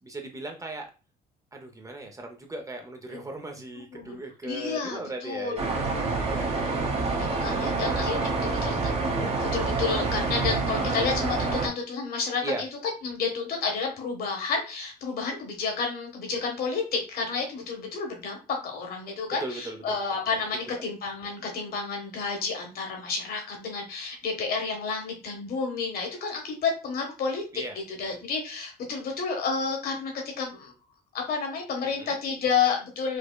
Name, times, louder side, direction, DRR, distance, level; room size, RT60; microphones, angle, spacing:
voice 1, 0.0-0.9 1.5-6.5 12.4-12.6 19.4-20.0 27.5-27.8 31.8-32.2, right 2 dB, 20° right, 3 dB, 0.6 m, -38 dB
voice 2, 4.4-8.8 9.4-27.4 28.0-30.1 30.4-30.7 31.1-33.2, left 5 dB, 65° left, 2 dB, 1.4 m, -31 dB
sound 1, 5.6-11.7, right 3 dB, 35° right, 1.0 m, -27 dB
4.9 x 2.1 x 2.3 m, 0.32 s
cardioid pair, 110°, 17 cm